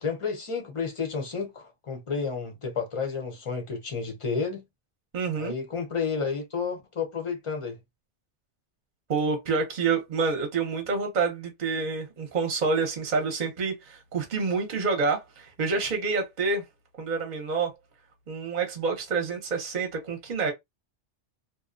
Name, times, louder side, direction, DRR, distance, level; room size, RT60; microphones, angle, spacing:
voice 1, 0.0-4.6 5.4-7.8, left 5 dB, 40° left, 0.5 m, -31 dB
voice 2, 5.1-5.5 9.1-16.7 17.0-17.7 18.3-20.5, right 4 dB, 45° right, 0.7 m, -28 dB
2.6 x 2.0 x 2.4 m
omnidirectional pair, 1.2 m